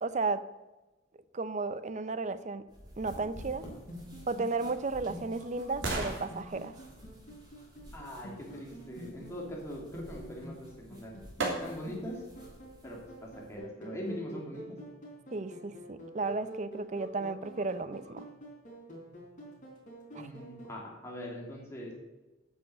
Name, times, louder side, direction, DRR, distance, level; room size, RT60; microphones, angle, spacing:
voice 1, 0.0-0.5 1.3-2.7 3.0-3.7 4.3-6.8 15.3-18.3 20.1-20.3, right 3 dB, 40° right, 14 dB, 0.5 m, -34 dB
sound 1, 2.7-13.6, equal, 20° right, 3.1 m, -52 dB
sound 2, 3.2-20.7, right 1 dB, 40° left, 4.2 m, -48 dB
sound 3, 4.5-8.4 10.5-10.6 11.4-12.1 12.6-12.7, right 2 dB, 85° right, 2.8 m, -39 dB
voice 2, 7.9-11.2 11.5-12.2 12.8-14.8 20.2-21.9, equal, 15° left, -3 dB, 2.8 m, -42 dB
9.4 x 6.4 x 8.0 m, 1.1 s
head